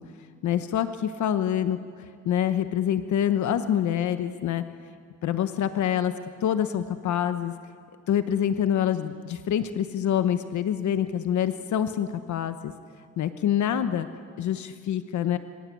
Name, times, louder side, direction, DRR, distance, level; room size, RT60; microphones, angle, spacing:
voice 1, 0.4-4.6 5.2-6.1 6.4-7.5 8.1-12.7 13.2-14.1 14.4-15.4, left 9 dB, 65° left, 10 dB, 1.2 m, -26 dB
27.0 x 26.0 x 8.5 m, 2.1 s
cardioid pair, 140°, 31 cm